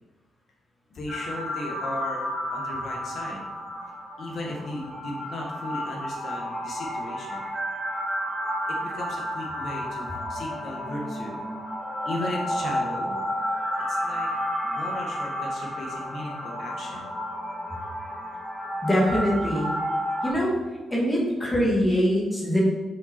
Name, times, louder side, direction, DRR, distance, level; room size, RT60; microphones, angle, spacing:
voice 1, 0.9-3.4 4.2-7.5 8.8-11.4 12.0-13.2 13.9-14.3 14.6-17.1, left 1 dB, 50° left, -1 dB, 1.6 m, -36 dB
sound 1, 1.1-20.3, equal, 20° right, 2.2 m, -31 dB
voice 2, 18.8-19.7 20.2-20.6 20.9-22.6, equal, 15° left, -4 dB, 1.9 m, -23 dB
7.0 x 5.9 x 4.4 m, 1.2 s
wide cardioid pair, 175°, 0 cm